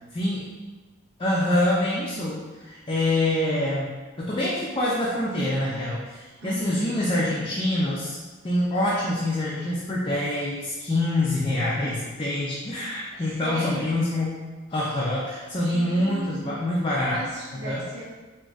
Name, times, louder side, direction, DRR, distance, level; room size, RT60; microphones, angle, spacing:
voice 1, 0.1-0.4 1.2-3.9 4.2-8.2 8.4-14.4 14.7-17.2 17.5-17.8, left 1 dB, 25° left, -6 dB, 0.4 m, -25 dB
voice 2, 6.4-6.9 13.1-14.0 15.5-16.7 17.1-18.0, right 1 dB, 65° right, -6 dB, 0.5 m, -37 dB
3.8 x 2.2 x 3.5 m, 1.3 s
head